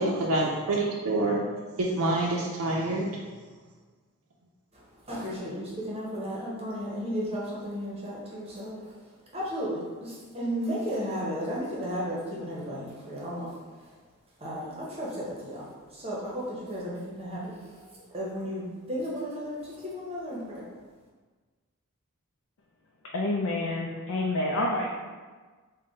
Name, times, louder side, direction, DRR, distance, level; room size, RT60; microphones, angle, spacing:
voice 1, 0.0-1.4 1.8-3.1, right 2 dB, 85° right, -3 dB, 0.5 m, -26 dB
voice 2, 4.7-9.0 9.3-14.0 14.4-20.7, equal, 25° right, -6 dB, 0.8 m, -34 dB
voice 3, 23.1-25.1, left 2 dB, 80° left, -1 dB, 0.4 m, -28 dB
3.7 x 2.2 x 3.9 m, 1.4 s
head